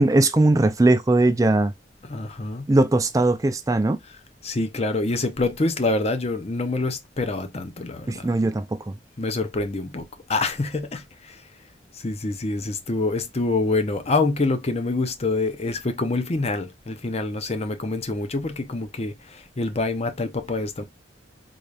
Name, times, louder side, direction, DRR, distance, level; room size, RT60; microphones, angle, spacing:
voice 1, 0.0-1.7 2.7-4.0 8.1-9.0, right 2 dB, 20° right, 0.3 m, -19 dB
voice 2, 2.0-2.7 4.4-8.3 9.2-11.4 11.9-20.8, left 3 dB, 35° left, 0.7 m, -26 dB
4.0 x 2.4 x 3.2 m
head